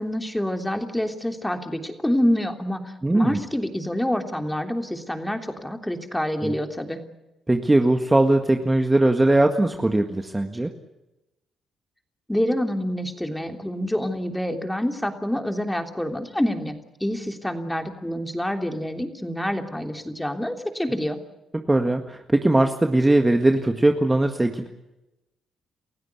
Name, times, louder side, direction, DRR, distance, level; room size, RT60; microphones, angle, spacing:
voice 1, 0.0-7.0 12.3-16.7 17.0-21.2, equal, 5° left, 5 dB, 3.3 m, -27 dB
voice 2, 3.0-3.4 6.4-6.6 7.5-10.7 21.7-24.7, right 2 dB, 15° right, 5 dB, 1.8 m, -20 dB
29.0 x 15.5 x 8.4 m, 0.96 s
cardioid pair, 90°, 0 cm